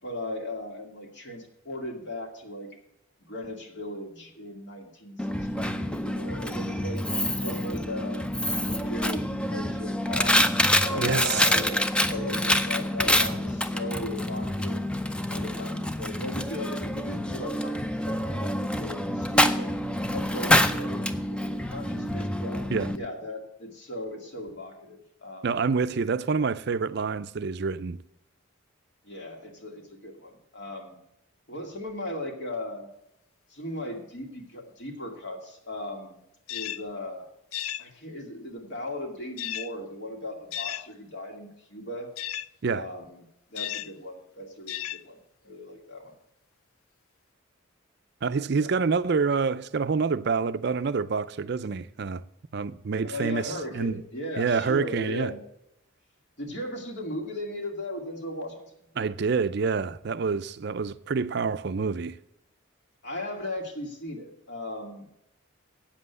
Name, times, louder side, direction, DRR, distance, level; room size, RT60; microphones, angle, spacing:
voice 1, 0.0-2.7 3.2-5.3 5.5-7.0 7.3-8.3 8.6-10.4 10.8-14.9 15.3-19.7 20.1-22.6 22.9-25.6 26.3-26.4 29.0-31.0 31.5-32.9 33.5-36.2 36.5-37.2 37.8-42.1 42.7-43.2 43.5-45.2 45.4-46.1 48.6-48.7 53.0-55.4 56.4-58.8 63.0-65.1, left 1 dB, 55° left, 2.2 m, -37 dB
Coin (dropping), 5.2-23.0, left 1 dB, 5° left, 0.4 m, -27 dB
voice 2, 11.0-11.5 22.7-22.9 25.4-28.0 42.6-42.9 48.2-52.2 52.5-53.9 54.4-55.3 59.0-62.2, right 5 dB, 50° right, 0.4 m, -27 dB
sound 1, 36.5-36.8 37.5-37.9 39.4-39.7 40.5-40.9 42.2-42.5 43.5-43.9 44.7-45.0, left 13 dB, 80° left, 0.4 m, -34 dB
8.7 x 7.6 x 8.1 m
head